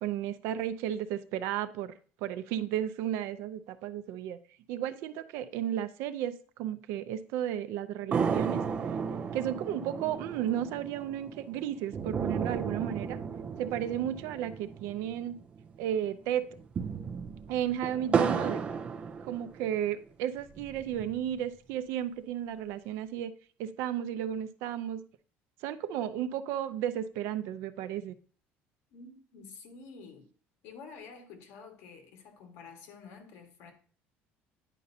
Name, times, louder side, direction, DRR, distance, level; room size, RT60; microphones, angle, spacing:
voice 1, 0.0-1.9 2.2-4.4 4.7-8.6 9.3-13.2 13.6-15.4 15.8-16.5 17.5-18.6 19.2-23.3 23.6-25.0 25.6-28.1, right 10 dB, 75° right, 0.5 m, -33 dB
sound 1, 8.1-15.7 16.0-16.1 16.5-19.9 20.4-21.4, right 6 dB, 25° right, 0.5 m, -34 dB
voice 2, 28.9-30.3 30.6-33.7, left 5 dB, 65° left, 1.5 m, -49 dB
9.9 x 5.3 x 2.7 m
cardioid pair, 170°, 5 cm